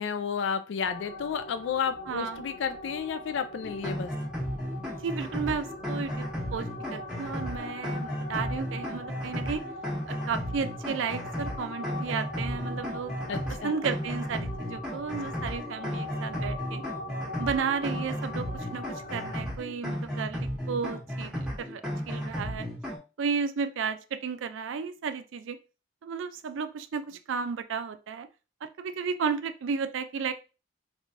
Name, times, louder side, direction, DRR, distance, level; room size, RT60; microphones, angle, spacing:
voice 1, 0.0-4.1 13.3-13.8, left 6 dB, 70° left, 10 dB, 0.3 m, -32 dB
sound 1, 0.8-19.4, left 2 dB, 50° left, 1.1 m, -41 dB
voice 2, 2.1-2.4 5.0-9.6 10.1-13.2 13.6-16.8 17.4-21.8 22.1-22.7 23.2-25.6 26.0-28.3 28.6-30.3, right 6 dB, 75° right, 10 dB, 0.4 m, -33 dB
sound 2, 3.6-23.0, equal, 5° right, 0.9 m, -34 dB
3.3 x 3.1 x 2.5 m, 0.32 s
head